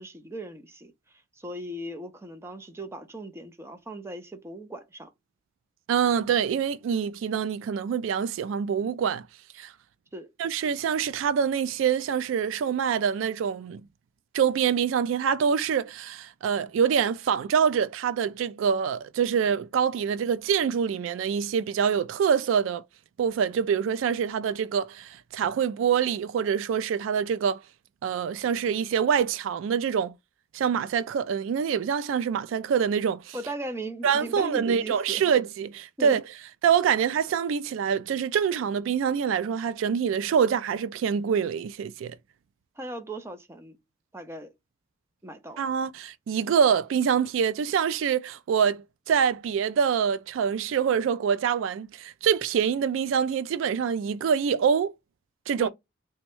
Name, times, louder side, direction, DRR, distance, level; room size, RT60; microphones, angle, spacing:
voice 1, 0.0-5.1 10.1-10.3 33.3-35.2 36.0-36.2 42.8-43.8 44.1-44.5 45.2-45.6 55.6-55.7, right 1 dB, 15° right, 0.5 m, -38 dB
voice 2, 5.9-9.3 9.6-9.7 10.4-13.8 14.3-22.8 23.2-27.6 28.0-30.1 30.5-33.4 34.0-36.2 36.6-42.1 45.6-54.9 55.5-55.7, right 7 dB, 85° right, 0.3 m, -25 dB
3.4 x 2.1 x 4.3 m
head